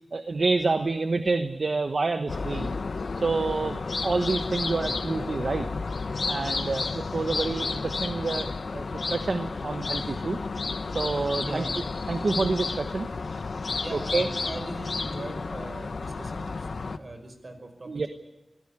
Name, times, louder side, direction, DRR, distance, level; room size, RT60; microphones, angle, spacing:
voice 1, 0.1-2.8 3.1-5.7 6.3-10.4 10.9-11.6 12.1-13.1 13.9-14.3 17.9-18.1, right 3 dB, 70° right, 8 dB, 1.2 m, -28 dB
sound 1, 2.3-17.0, left 4 dB, 85° left, 1.1 m, -32 dB
voice 2, 11.4-11.7 13.8-18.1, right 1 dB, 55° right, 7 dB, 5.5 m, -39 dB
25.5 x 16.5 x 9.8 m, 1.0 s
wide cardioid pair, 80°, 0 cm